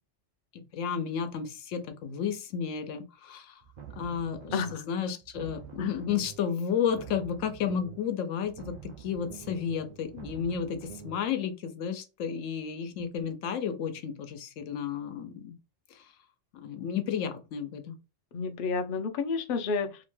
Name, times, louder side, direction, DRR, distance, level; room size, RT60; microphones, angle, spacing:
voice 1, 0.5-3.6 4.0-15.6 15.9-16.1 16.5-18.0, left 7 dB, 85° left, 1.0 m, -32 dB
sound 1, 3.6-4.9 5.2-6.5 6.8-8.1 8.4-11.2, right 8 dB, 50° right, 0.5 m, -47 dB
voice 2, 4.5-4.8 5.8-5.9 18.3-20.0, left 4 dB, 60° left, 0.6 m, -30 dB
2.8 x 2.1 x 3.0 m
omnidirectional pair, 1.3 m